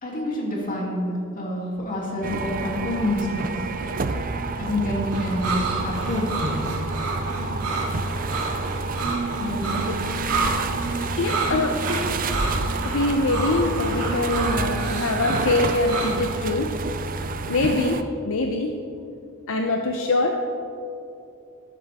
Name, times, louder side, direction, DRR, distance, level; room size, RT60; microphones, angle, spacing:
voice 1, 0.0-3.5 4.6-6.2 9.4-9.9, left 1 dB, 40° left, -3 dB, 2.9 m, -27 dB
sound 1, 2.2-18.0, right 3 dB, 40° right, 0.6 m, -29 dB
sound 2, 5.1-16.4, right 2 dB, 80° right, 3.0 m, -29 dB
voice 2, 9.6-9.9 11.2-11.8 12.8-16.7 17.5-18.7 19.5-20.4, left 2 dB, 65° left, 3 dB, 0.8 m, -24 dB
13.5 x 13.0 x 3.6 m, 2.8 s
head